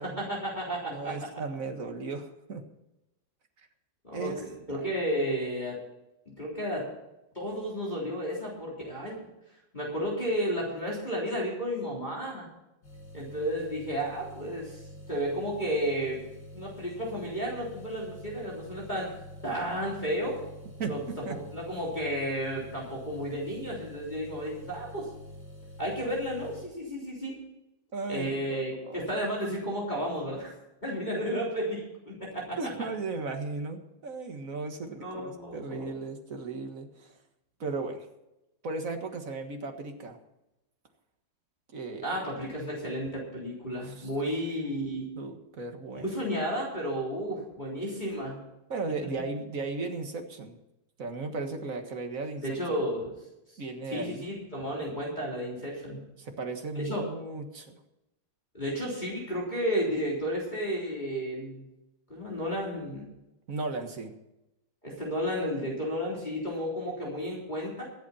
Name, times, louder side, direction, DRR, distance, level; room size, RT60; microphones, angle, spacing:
voice 1, 0.0-1.2 4.0-5.8 6.4-6.9 7.3-9.3 9.7-12.5 13.1-14.8 15.1-16.2 16.5-19.1 19.4-20.4 20.9-21.0 21.5-25.1 25.8-27.4 28.1-30.5 30.8-32.6 35.0-35.9 42.0-45.1 45.9-48.4 52.4-53.1 53.5-53.6 53.9-56.0 56.8-57.0 58.5-61.7 62.1-63.1 64.8-67.8, equal, 20° left, -5 dB, 3.7 m, -32 dB
voice 2, 0.9-2.6 3.6-3.7 4.1-4.4 4.7-4.9 20.8-21.4 27.9-29.1 32.6-37.1 37.6-38.1 38.6-40.2 41.7-42.2 43.7-44.1 45.2-46.2 48.7-50.6 51.0-52.8 53.6-54.2 56.2-57.8 63.5-64.1, right 3 dB, 40° right, 5 dB, 1.8 m, -36 dB
sound 1, 12.8-26.7, left 1 dB, 60° left, 5.1 m, -47 dB
24.0 x 8.3 x 4.3 m, 0.93 s
omnidirectional pair, 2.4 m